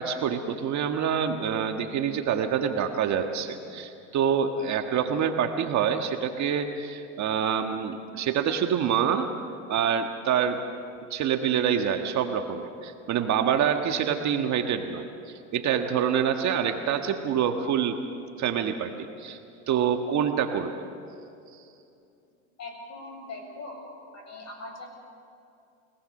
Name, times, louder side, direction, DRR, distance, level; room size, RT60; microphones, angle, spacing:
voice 1, 0.0-9.3 9.7-10.6 11.1-18.0 18.4-18.9 19.2-19.4 19.7-20.7, right 8 dB, 40° right, 5 dB, 1.6 m, -26 dB
voice 2, 22.6-24.9, left 2 dB, 40° left, 2 dB, 7.6 m, -41 dB
29.5 x 19.0 x 6.6 m, 2.6 s
hypercardioid pair, 95°, 43 cm